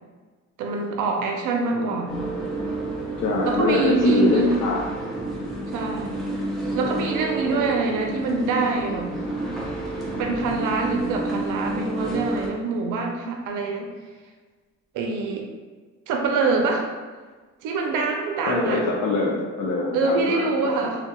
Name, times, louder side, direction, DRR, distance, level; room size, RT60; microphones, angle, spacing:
voice 1, 0.6-2.4 3.4-4.6 5.7-6.3 6.7-9.1 10.2-13.9 14.9-15.5 16.1-16.9 17.6-18.8 19.9-21.0, right 3 dB, 85° right, 2 dB, 0.5 m, -24 dB
sound 1, 2.1-12.5, right 2 dB, ahead, 0.5 m, -30 dB
voice 2, 3.2-4.8 18.5-20.9, left 3 dB, 60° left, -4 dB, 0.5 m, -24 dB
2.8 x 2.2 x 2.2 m, 1.4 s
cardioid pair, 90°, 30 cm